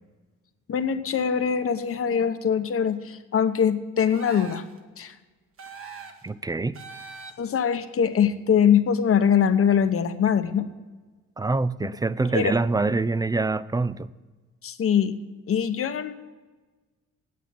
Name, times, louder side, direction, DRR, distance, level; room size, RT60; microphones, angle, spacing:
voice 1, 0.7-4.6 5.0-5.1 7.4-10.7 12.3-12.5 14.6-15.2 15.5-16.1, left 8 dB, 50° left, 0.9 m, -22 dB
sound 1, 4.1-4.8 5.6-6.3 6.7-7.6, right 4 dB, 45° right, 1.5 m, -42 dB
voice 2, 6.2-6.8 11.4-14.1, right 3 dB, 15° right, 0.3 m, -25 dB
9.5 x 8.3 x 8.5 m
cardioid pair, 90°, 30 cm